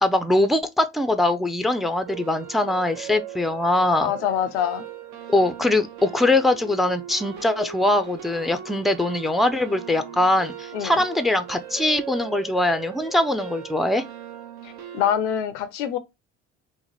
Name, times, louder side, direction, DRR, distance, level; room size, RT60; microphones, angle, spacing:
voice 1, 0.0-4.1 5.3-14.0, left 1 dB, ahead, 0.5 m, -22 dB
sound 1, 2.1-15.2, right 9 dB, 55° right, 0.8 m, -39 dB
voice 2, 4.0-4.8 10.7-11.0 14.9-16.0, left 9 dB, 80° left, 0.6 m, -24 dB
2.9 x 2.2 x 4.0 m
hypercardioid pair, 55°, 35 cm